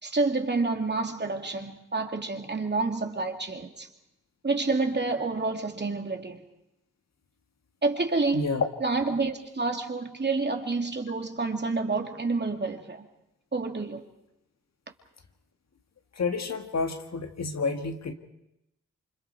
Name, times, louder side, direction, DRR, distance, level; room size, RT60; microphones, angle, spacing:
voice 1, 0.0-3.9 4.4-6.4 7.8-8.5 8.8-13.0 13.5-14.1, right 3 dB, 35° right, 4 dB, 2.9 m, -28 dB
voice 2, 8.3-8.7 16.2-18.1, left 4 dB, 60° left, 5 dB, 2.0 m, -29 dB
28.5 x 25.5 x 4.7 m, 0.87 s
cardioid pair, 50°, 30 cm